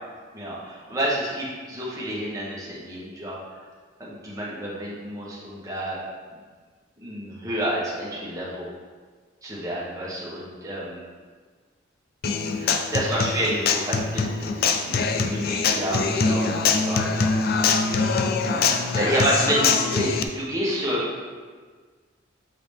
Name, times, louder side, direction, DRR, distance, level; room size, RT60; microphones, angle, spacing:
voice 1, 0.3-3.4 4.0-6.0 6.3-6.4 7.0-8.7 9.4-11.0 12.5-17.4 18.9-21.1, right 1 dB, 20° right, -6 dB, 1.5 m, -29 dB
Human voice / Acoustic guitar, 12.2-20.2, left 4 dB, 50° left, 0.4 m, -23 dB
8.0 x 4.0 x 3.5 m, 1.5 s
head